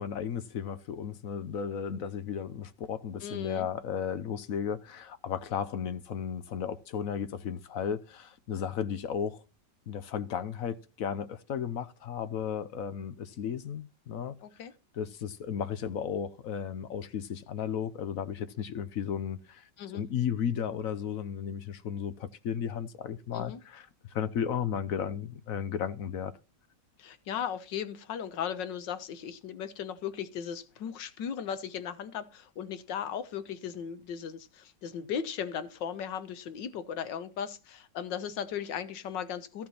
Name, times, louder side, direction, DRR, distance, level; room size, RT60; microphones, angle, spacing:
voice 1, 0.0-9.4 9.9-14.4 14.9-19.7 19.9-26.3, left 8 dB, 60° left, 1.1 m, -34 dB
voice 2, 3.2-3.7 14.4-14.7 19.8-20.1 23.3-23.6 27.0-39.7, left 8 dB, 90° left, 1.7 m, -37 dB
14.5 x 6.0 x 4.3 m
omnidirectional pair, 1.9 m